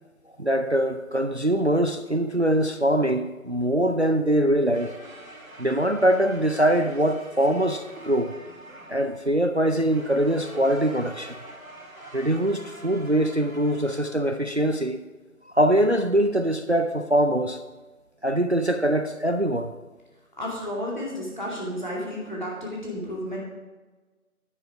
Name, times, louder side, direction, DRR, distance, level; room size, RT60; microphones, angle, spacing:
voice 1, 0.4-4.9 5.6-8.3 8.9-11.4 12.1-15.0 15.5-17.6 18.2-19.7, right 1 dB, 50° right, 8 dB, 0.5 m, -23 dB
sound 1, 4.7-14.8, right 1 dB, 70° right, 2.2 m, -45 dB
voice 2, 20.4-23.4, equal, 30° left, -4 dB, 2.4 m, -32 dB
10.0 x 7.8 x 4.9 m, 1.2 s
figure-of-eight pair, 175°, 44 cm